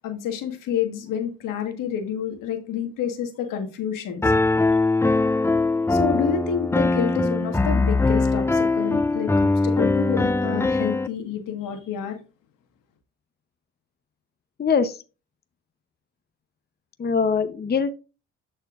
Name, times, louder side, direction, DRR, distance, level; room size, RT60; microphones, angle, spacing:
voice 1, 0.0-4.3 5.9-12.2, left 8 dB, 75° left, 1.5 m, -28 dB
Piano, 4.2-11.1, left 3 dB, 10° left, 0.3 m, -21 dB
voice 2, 14.6-15.0 17.0-17.9, left 5 dB, 30° left, 0.8 m, -22 dB
13.0 x 4.4 x 2.4 m
supercardioid pair, 55°, 32 cm